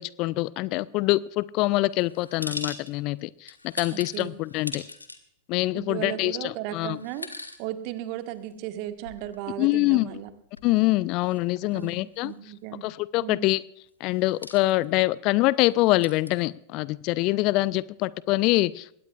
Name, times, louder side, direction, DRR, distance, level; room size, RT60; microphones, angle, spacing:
voice 1, 0.0-4.8 5.5-7.0 9.6-10.1 10.6-12.3 12.8-13.6 14.0-18.9, left 19 dB, 40° left, 21 dB, 0.4 m, -25 dB
sound 1, 2.0-3.2 3.5-5.2 5.9-6.0 6.9-7.6 8.0-8.1 8.7-10.3 10.5-10.7 11.3-11.4 11.7-12.3 14.1-14.8 15.7-16.3, left 2 dB, 80° left, 1.4 m, -40 dB
voice 2, 3.9-4.3 5.7-7.3 7.6-10.3 11.7-12.9 13.2-13.5, right 12 dB, 45° right, 9 dB, 1.4 m, -35 dB
21.5 x 17.5 x 2.4 m, 0.74 s
figure-of-eight pair, 90°, 0 cm